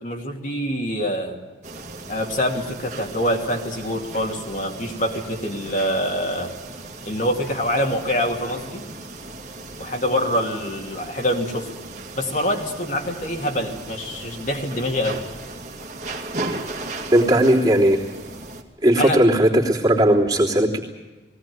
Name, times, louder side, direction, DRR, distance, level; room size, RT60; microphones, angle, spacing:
voice 1, 0.0-1.4 2.1-6.5 7.1-8.8 9.8-11.7 12.1-15.2 19.0-19.2, equal, 45° left, 1 dB, 2.5 m, -25 dB
sound 1, 1.6-18.6, right 2 dB, 40° right, 2.2 m, -36 dB
voice 2, 17.1-18.0 18.8-20.8, right 1 dB, 20° right, -3 dB, 3.2 m, -17 dB
20.5 x 17.5 x 9.5 m, 1.2 s
head